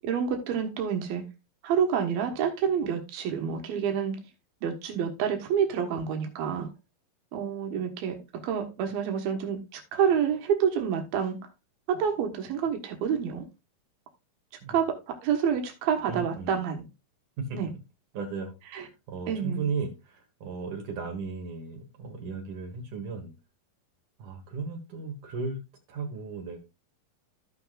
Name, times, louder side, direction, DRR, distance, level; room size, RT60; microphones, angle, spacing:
voice 1, 0.0-1.2 1.6-4.2 4.6-6.7 7.3-11.4 11.9-13.4 14.7-16.8 17.5-17.7 18.7-18.8 19.3-19.6, right 7 dB, 80° right, 3.2 m, -28 dB
voice 2, 16.1-16.5 17.4-17.6 18.1-23.3 24.2-25.6 25.9-26.6, right 4 dB, 65° right, 2.7 m, -35 dB
15.5 x 5.8 x 2.4 m
omnidirectional pair, 4.2 m